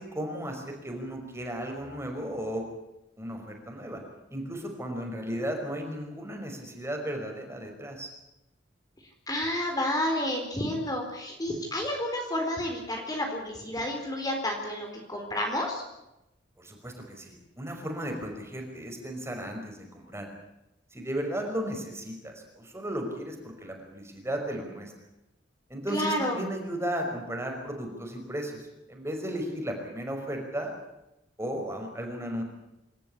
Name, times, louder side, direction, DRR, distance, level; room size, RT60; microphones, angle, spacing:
voice 1, 0.0-2.7 3.2-4.0 4.3-8.1 16.6-20.3 20.9-24.9 25.7-28.6 28.9-30.7 31.4-32.4, equal, 15° right, 2 dB, 5.4 m, -35 dB
voice 2, 9.3-15.8 25.9-26.4, left 1 dB, 20° left, 2 dB, 4.1 m, -30 dB
27.0 x 14.0 x 10.0 m, 0.89 s
head